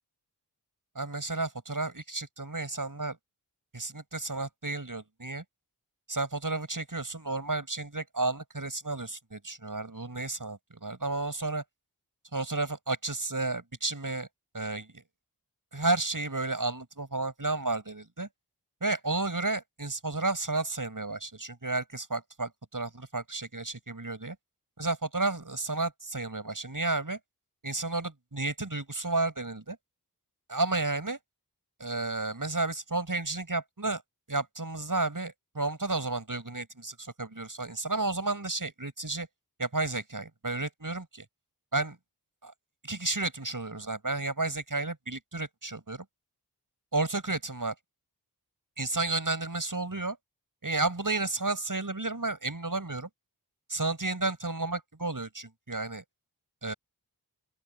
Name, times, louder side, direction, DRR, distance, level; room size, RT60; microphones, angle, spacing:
voice 1, 0.9-3.2 3.7-5.4 6.1-11.6 12.3-14.3 14.5-15.0 15.7-18.3 18.8-24.4 24.8-27.2 27.6-29.8 30.5-31.2 31.8-34.0 34.3-39.3 39.6-41.2 41.7-42.0 42.4-42.5 42.8-46.0 46.9-47.7 48.8-50.2 50.6-53.1 53.7-56.0 56.6-56.7, right 2 dB, 50° right, 6.6 m, -32 dB
open air
wide cardioid pair, 45°, 40 cm